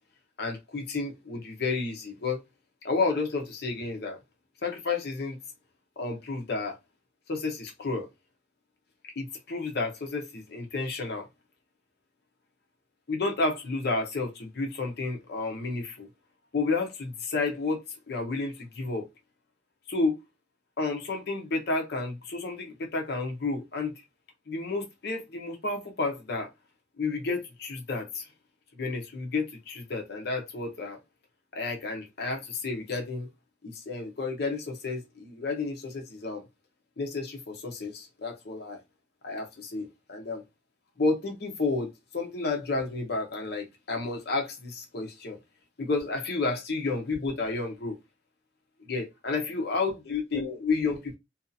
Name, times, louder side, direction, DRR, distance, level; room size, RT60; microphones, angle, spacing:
voice 1, 0.4-2.4 2.8-4.2 4.6-5.4 6.0-6.8 7.3-8.1 9.2-11.3 13.1-16.1 16.5-17.8 18.1-19.1 19.9-20.2 20.8-23.9 24.5-26.5 27.0-28.3 28.7-31.0 31.5-33.3 33.6-36.4 37.0-38.8 39.2-40.4 41.0-45.4 45.8-48.0 48.8-51.2, left 3 dB, 60° left, 0.7 m, -31 dB
2.7 x 2.4 x 2.6 m
head